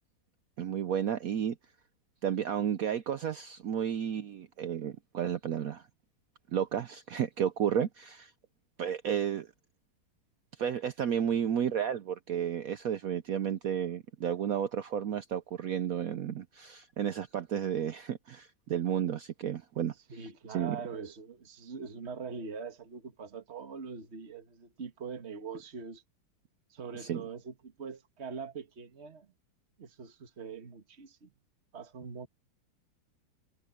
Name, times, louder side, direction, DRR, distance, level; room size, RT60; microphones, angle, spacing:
voice 1, 0.6-1.6 2.2-5.8 6.5-8.3 8.8-9.5 10.6-19.9 20.5-20.8 27.0-27.2, right 9 dB, 75° right, 0.8 m, -32 dB
voice 2, 20.1-26.0 26.7-29.3 29.8-31.3 31.7-32.3, right 5 dB, 35° right, 1.9 m, -43 dB
omnidirectional pair, 2.2 m